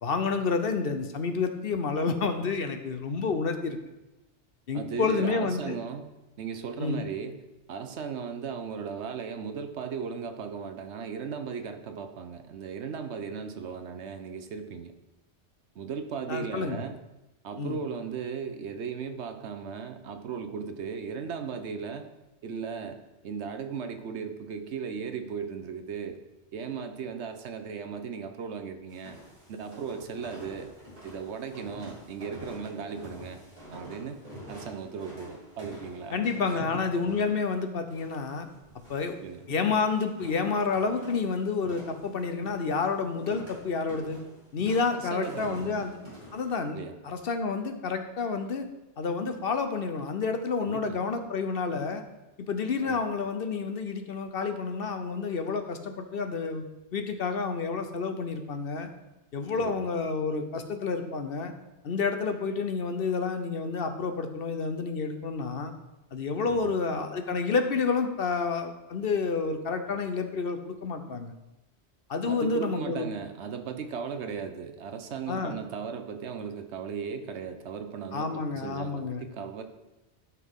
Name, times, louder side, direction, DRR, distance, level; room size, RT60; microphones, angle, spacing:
voice 1, 0.0-3.8 4.7-5.8 6.8-7.0 16.3-16.8 17.6-17.8 36.1-38.5 38.9-39.2 39.5-44.2 44.5-45.9 46.3-46.8 47.0-48.7 49.0-52.0 52.4-56.6 56.9-58.9 59.3-61.5 61.8-65.7 66.1-71.3 72.1-73.1 75.3-75.6 78.1-79.2, left 4 dB, 60° left, 7 dB, 0.9 m, -29 dB
voice 2, 4.7-6.1 6.4-7.4 7.7-14.9 15.7-17.0 17.4-22.1 22.4-26.2 26.5-29.2 29.5-30.7 31.0-33.4 33.7-34.2 34.5-36.8 39.2-39.4 44.9-45.8 46.7-46.9 50.6-51.0 52.8-53.0 59.5-59.9 66.5-66.7 72.2-79.6, right 6 dB, 75° right, 8 dB, 1.1 m, -37 dB
sound 1, 28.9-46.6, equal, 30° right, 3.9 m, -47 dB
12.0 x 6.0 x 3.6 m, 1.0 s
omnidirectional pair, 1.2 m